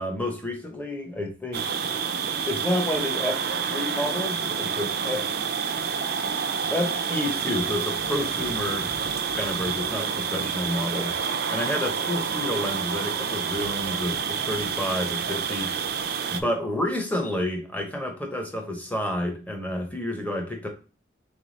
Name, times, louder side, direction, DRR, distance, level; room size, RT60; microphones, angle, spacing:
voice 1, 0.0-1.7 2.5-3.4 3.7-5.3 6.7-8.9 9.3-11.2 11.5-15.8 16.3-20.7, left 1 dB, 10° left, 3 dB, 0.7 m, -29 dB
sound 1, 1.5-16.4, right 6 dB, 55° right, 0.4 m, -28 dB
3.5 x 3.3 x 3.9 m, 0.35 s
head